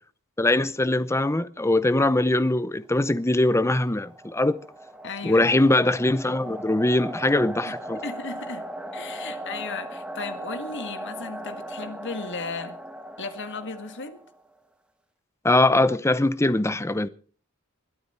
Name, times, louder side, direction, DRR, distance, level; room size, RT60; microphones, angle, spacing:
voice 1, 0.4-4.6 5.2-8.0 15.4-17.1, left 2 dB, 15° left, 0.7 m, -22 dB
sound 1, 3.6-14.5, right 1 dB, 5° right, 1.4 m, -38 dB
voice 2, 5.0-5.5 7.7-7.8 8.0-8.7 8.9-12.8 13.2-14.2, left 4 dB, 55° left, 1.8 m, -35 dB
21.5 x 12.0 x 4.4 m
head